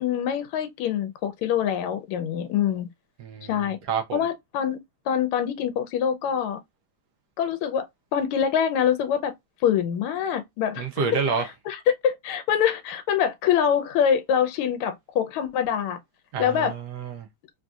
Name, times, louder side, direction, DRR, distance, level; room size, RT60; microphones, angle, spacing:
voice 1, 0.0-2.9 3.4-3.8 4.1-4.8 5.1-6.6 7.4-7.9 8.1-9.3 9.6-10.9 11.4-16.0 16.4-16.7, left 8 dB, 80° left, 1.4 m, -25 dB
voice 2, 3.2-4.2 10.8-11.4 16.3-17.3, right 5 dB, 70° right, 1.0 m, -28 dB
3.7 x 2.6 x 2.3 m
omnidirectional pair, 2.4 m